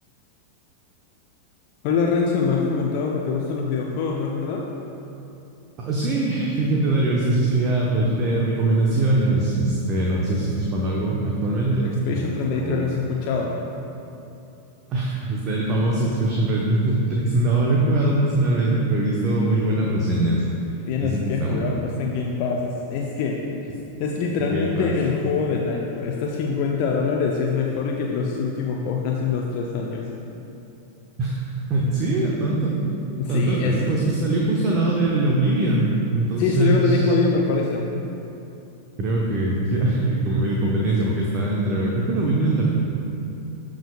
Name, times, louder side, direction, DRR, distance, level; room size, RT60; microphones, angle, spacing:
voice 1, 1.8-4.6 11.8-13.6 20.9-23.4 24.0-30.1 33.2-33.8 36.4-37.9, left 5 dB, 45° left, -1 dB, 0.6 m, -24 dB
voice 2, 5.8-12.9 14.9-20.4 21.0-21.7 24.4-24.9 31.2-32.9 33.3-37.2 39.0-42.7, right 2 dB, 30° right, -3 dB, 1.0 m, -22 dB
15.0 x 5.0 x 2.3 m, 2.8 s
figure-of-eight pair, 90°, 0 cm